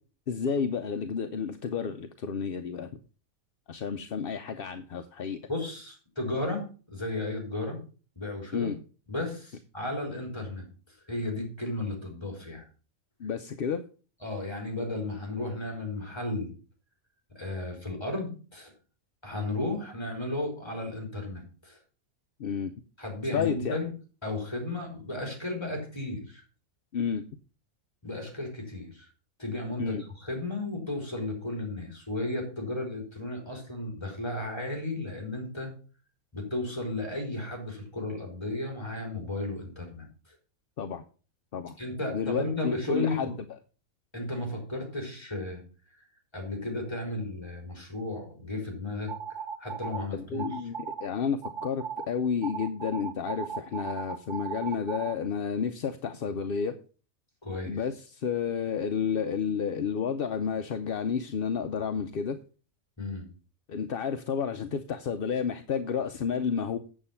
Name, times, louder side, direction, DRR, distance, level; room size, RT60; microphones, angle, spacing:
voice 1, 0.3-2.9 3.7-5.4 8.5-8.8 13.2-13.8 22.4-22.7 23.3-23.8 26.9-27.2 29.8-30.0 40.8-41.0 41.5-41.8 42.1-43.3 50.1-50.8 51.0-56.7 57.7-62.4 63.7-66.8, left 6 dB, 55° left, 8 dB, 0.7 m, -31 dB
voice 2, 5.5-7.8 8.2-8.7 9.1-10.7 11.1-12.6 14.2-16.5 17.3-18.7 19.2-21.8 23.0-23.9 24.2-26.4 28.0-29.1 29.4-35.7 36.3-40.1 41.8-43.3 44.1-45.6 46.3-49.1 49.6-50.5 57.4-57.8 63.0-63.3, left 2 dB, 20° left, 1 dB, 3.9 m, -34 dB
sound 1, 49.1-50.0 50.4-51.1 51.4-52.1 52.4-55.1, right 7 dB, 60° right, 1.4 m, -36 dB
8.8 x 7.3 x 5.6 m, 0.37 s
omnidirectional pair, 1.4 m